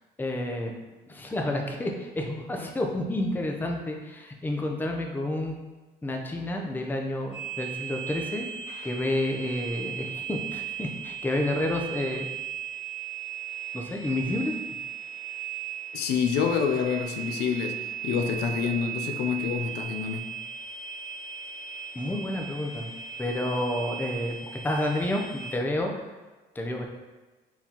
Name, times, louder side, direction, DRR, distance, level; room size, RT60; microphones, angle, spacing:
voice 1, 0.2-0.7 1.1-5.5 6.0-8.5 8.8-12.3 13.7-14.5 21.9-22.9 23.2-24.4 24.6-26.0 26.6-26.9, left 1 dB, 10° left, 0.5 m, -30 dB
sound 1, 7.3-25.5, right 9 dB, 45° left, 1.3 m, -37 dB
voice 2, 15.9-20.3, left 7 dB, 75° left, 0.5 m, -27 dB
4.5 x 3.6 x 2.9 m
cardioid pair, 110°, 17 cm